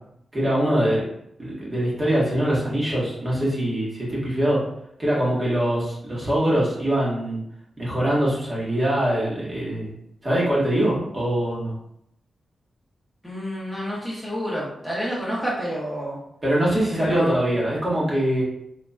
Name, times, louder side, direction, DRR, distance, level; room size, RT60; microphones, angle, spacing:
voice 1, 0.3-1.0 1.4-4.6 5.0-7.4 7.8-9.9 10.2-11.7 16.4-18.4, right 1 dB, 30° right, -6 dB, 1.5 m, -23 dB
voice 2, 13.2-16.2 16.9-17.4, equal, 5° left, -7 dB, 1.1 m, -29 dB
4.1 x 2.9 x 2.3 m, 0.75 s
cardioid pair, 90°, 0 cm